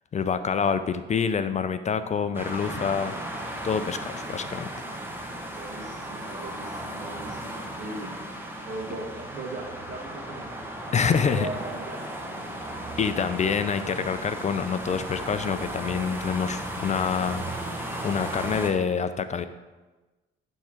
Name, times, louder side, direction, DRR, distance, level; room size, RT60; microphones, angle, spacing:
voice 1, 0.1-3.1 3.6-4.7 10.9-11.5 13.0-17.5 18.0-19.5, left 6 dB, 35° left, 10 dB, 0.4 m, -26 dB
sound 1, 2.3-18.7, right 1 dB, 10° right, 1.1 m, -36 dB
voice 2, 5.6-8.1 8.6-10.5 10.9-12.1 12.4-12.5, right 2 dB, 60° right, 0 dB, 1.7 m, -38 dB
sound 2, 11.1-11.7 12.1-12.2 12.6-13.1 13.5-13.6 14.0-14.1 14.5-14.7 15.0-16.3 16.5-16.7 17.1-17.4, equal, 40° right, 2.2 m, -49 dB
11.0 x 3.7 x 4.4 m, 1.2 s
cardioid pair, 90°, 20 cm